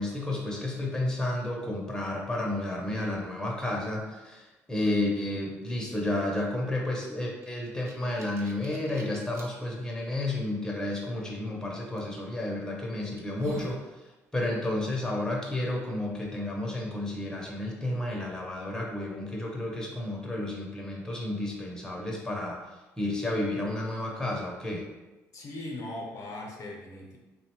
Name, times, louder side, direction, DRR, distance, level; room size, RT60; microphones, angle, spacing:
voice 1, 0.0-13.8 14.3-22.6 23.0-24.9, left 1 dB, 10° left, -2 dB, 0.6 m, -31 dB
sound 1, 7.4-9.5 10.1-10.2 12.0-12.2 12.7-12.8 13.2-13.8, right 3 dB, 45° right, 0.5 m, -45 dB
voice 2, 25.3-27.2, left 1 dB, 55° left, 0 dB, 0.6 m, -39 dB
2.6 x 2.1 x 2.9 m, 1.1 s
supercardioid pair, 65°, 7 cm